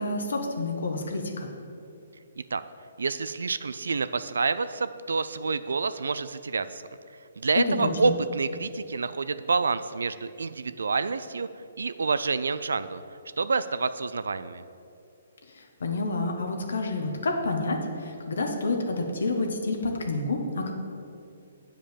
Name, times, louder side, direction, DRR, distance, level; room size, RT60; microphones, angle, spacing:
voice 1, 0.0-1.5 7.6-8.1 15.5-20.7, left 2 dB, 80° left, 3 dB, 1.1 m, -29 dB
voice 2, 3.0-6.8 7.4-11.5 11.8-13.0 13.4-14.6, right 4 dB, 80° right, 13 dB, 0.3 m, -28 dB
7.8 x 5.0 x 6.9 m, 2.6 s
hypercardioid pair, 140°, 0 cm